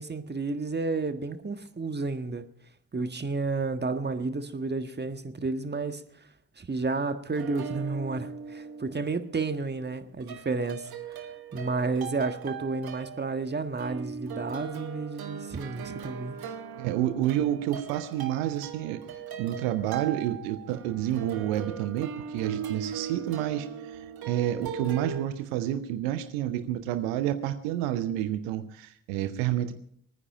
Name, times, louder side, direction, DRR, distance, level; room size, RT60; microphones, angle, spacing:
voice 1, 0.0-2.4 2.9-6.0 6.6-10.9 11.5-16.4, right 3 dB, 25° right, 9 dB, 1.5 m, -31 dB
sound 1, 7.3-9.8 10.2-25.3, right 7 dB, 60° right, 1.6 m, -39 dB
voice 2, 16.8-19.0 19.4-29.7, right 12 dB, 75° right, 10 dB, 0.9 m, -29 dB
21.5 x 9.8 x 4.9 m, 0.65 s
hypercardioid pair, 45°, 42 cm